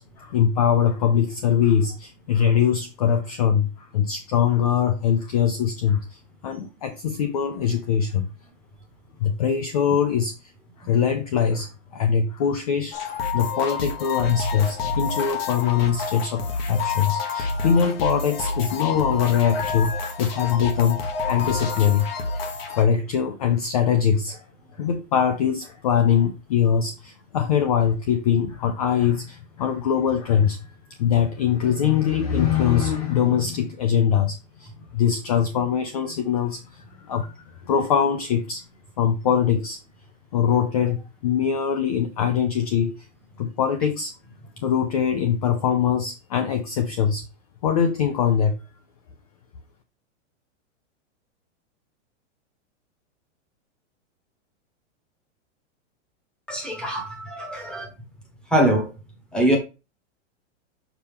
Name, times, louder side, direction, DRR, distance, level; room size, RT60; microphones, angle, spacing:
voice 1, 0.0-8.3 9.2-10.3 10.8-19.9 20.2-22.1 22.3-22.4 22.7-24.4 24.8-30.7 31.0-38.6 39.0-39.8 40.3-43.1 43.4-44.1 44.6-47.2 47.6-48.6, left 8 dB, 30° left, 0.5 m, -22 dB
sound 1, 12.9-22.8, left 4 dB, 50° left, 1.5 m, -28 dB
voice 2, 56.5-57.9 58.5-58.9 59.3-59.6, right 1 dB, ahead, 1.2 m, -22 dB
6.8 x 4.3 x 3.6 m
supercardioid pair, 175°, 36 cm